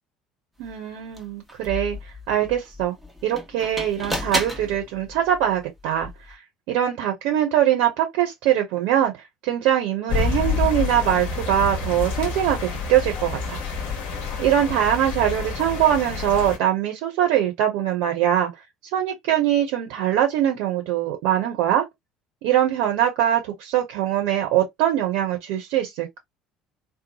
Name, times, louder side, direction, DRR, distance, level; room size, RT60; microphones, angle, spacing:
sound 1, 0.6-0.7 1.1-6.3, equal, ahead, 1.0 m, -34 dB
voice 1, 0.6-2.9 3.2-6.4 6.7-9.1 9.4-13.6 14.4-18.5 18.9-21.9 22.4-26.2, right 11 dB, 60° right, 0.9 m, -22 dB
sound 2, 10.1-16.6, left 5 dB, 50° left, 0.9 m, -28 dB
3.0 x 2.0 x 2.8 m
figure-of-eight pair, 60°, 3 cm